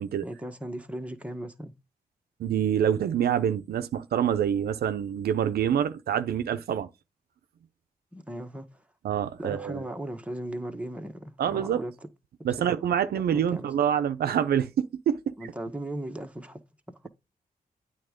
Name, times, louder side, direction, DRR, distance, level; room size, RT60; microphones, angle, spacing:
voice 1, 0.2-1.8 8.1-8.8 9.4-12.1 13.3-13.7 15.4-16.6 17.0-17.1, right 1 dB, 10° right, 1.3 m, -37 dB
voice 2, 2.4-6.9 9.0-9.9 11.4-11.8 12.4-15.3, right 9 dB, 90° right, 0.6 m, -26 dB
8.9 x 3.5 x 5.1 m
cardioid pair, 75°, 16 cm